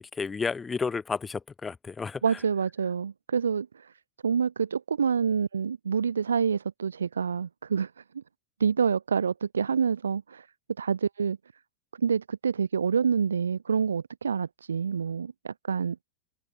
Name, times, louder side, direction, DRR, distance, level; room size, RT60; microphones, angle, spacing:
voice 1, 0.0-2.4, left 5 dB, 15° left, 0.4 m, -32 dB
voice 2, 2.2-3.9 4.2-8.2 8.6-10.5 10.8-11.4 12.0-16.0, right 6 dB, 70° right, 0.7 m, -27 dB
figure-of-eight pair, 90°, 0 cm